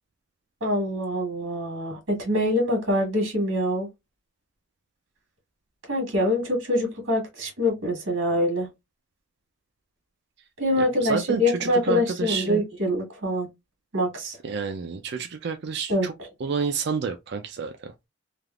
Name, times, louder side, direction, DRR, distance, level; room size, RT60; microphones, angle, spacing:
voice 1, 0.6-3.9 5.9-8.7 10.6-13.5 13.9-14.4 15.9-16.1, left 1 dB, 90° right, 1.5 m, -25 dB
voice 2, 11.0-12.6 14.4-16.1 16.4-17.9, right 5 dB, 55° right, 0.4 m, -29 dB
3.4 x 2.4 x 2.3 m
head